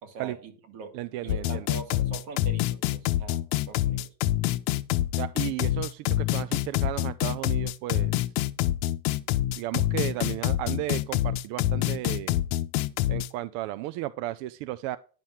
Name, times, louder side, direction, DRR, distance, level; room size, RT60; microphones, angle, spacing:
voice 1, 0.0-0.9 1.2-4.1, right 4 dB, 80° right, 2.7 m, -42 dB
voice 2, 0.9-1.7 5.2-8.1 9.6-12.4 13.1-15.0, right 15 dB, 60° right, 0.5 m, -34 dB
Fried Twinkie, 1.3-13.3, left 14 dB, 70° left, 0.8 m, -26 dB
10.5 x 5.6 x 3.1 m
supercardioid pair, 130°, 50 cm